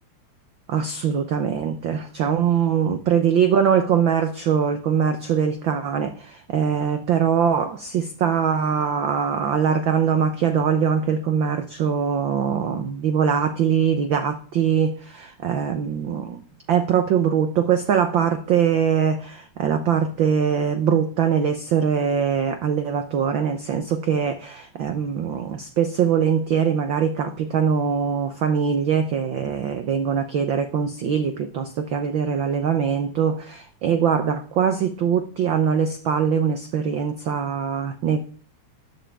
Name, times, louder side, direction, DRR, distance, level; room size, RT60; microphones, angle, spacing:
voice 1, 0.7-16.4 16.7-38.2, right 7 dB, 90° right, 8 dB, 1.0 m, -22 dB
14.0 x 10.0 x 3.5 m, 0.44 s
omnidirectional pair, 3.4 m